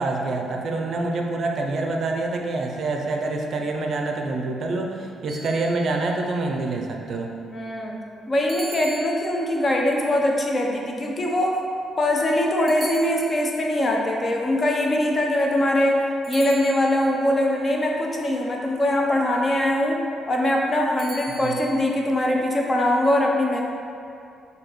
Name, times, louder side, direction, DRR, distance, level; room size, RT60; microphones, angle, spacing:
voice 1, 0.0-7.3 21.4-21.6, right 2 dB, 55° right, 2 dB, 0.4 m, -26 dB
sound 1, 5.3-6.2 8.5-9.7 12.7-13.7 16.2-17.2 21.0-21.8, right 2 dB, 35° right, 0.8 m, -40 dB
voice 2, 7.5-7.9 8.3-11.5 12.0-16.0 16.3-20.0 20.3-23.6, left 1 dB, 30° left, 0 dB, 0.6 m, -22 dB
6.2 x 2.7 x 3.1 m, 2.5 s
cardioid pair, 90°, 0 cm